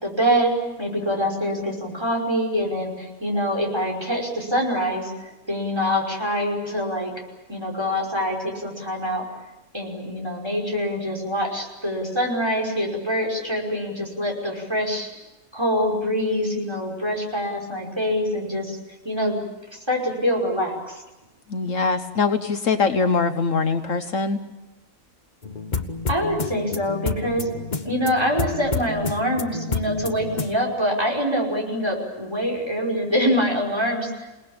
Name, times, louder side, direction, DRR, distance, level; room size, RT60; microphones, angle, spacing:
voice 1, 0.0-7.1 7.5-9.2 9.7-15.1 15.5-18.8 19.0-19.4 19.7-21.0 26.1-27.5 27.8-34.3, equal, 20° right, 0 dB, 5.4 m, -25 dB
voice 2, 21.5-24.4, left 4 dB, 65° left, 8 dB, 1.5 m, -22 dB
sound 1, 25.4-30.6, left 4 dB, 35° left, 1.3 m, -29 dB
28.0 x 19.0 x 8.7 m, 1.1 s
omnidirectional pair, 1.5 m